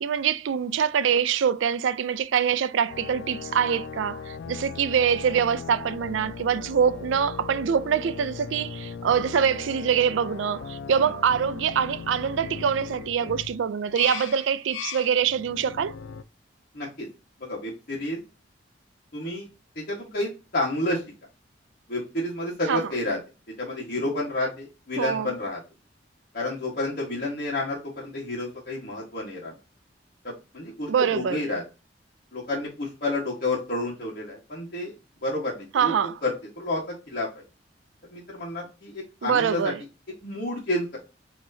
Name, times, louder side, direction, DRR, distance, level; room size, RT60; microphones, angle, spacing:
voice 1, 0.0-15.9 22.7-22.9 25.0-25.3 30.9-31.4 35.7-36.2 39.2-39.8, right 7 dB, 85° right, 0.4 m, -24 dB
sound 1, 2.9-16.2, left 6 dB, 75° left, 0.4 m, -38 dB
voice 2, 16.7-17.1 17.4-18.2 19.1-19.5 19.7-21.0 21.9-23.2 23.6-25.6 26.3-29.6 30.2-31.6 32.3-35.9 36.2-37.4 38.0-39.7 40.2-41.0, left 2 dB, 50° left, 1.4 m, -30 dB
6.1 x 2.9 x 2.7 m
head